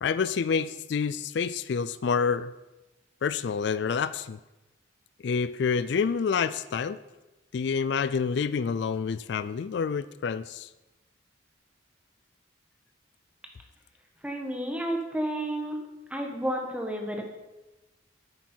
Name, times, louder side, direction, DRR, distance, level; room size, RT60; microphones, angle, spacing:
voice 1, 0.0-2.5 3.2-4.4 5.2-7.0 7.5-10.7, left 6 dB, 60° left, 15 dB, 0.3 m, -28 dB
voice 2, 14.2-15.8 16.1-17.2, right 1 dB, 5° right, 2 dB, 1.3 m, -31 dB
10.5 x 8.2 x 4.5 m, 1.0 s
head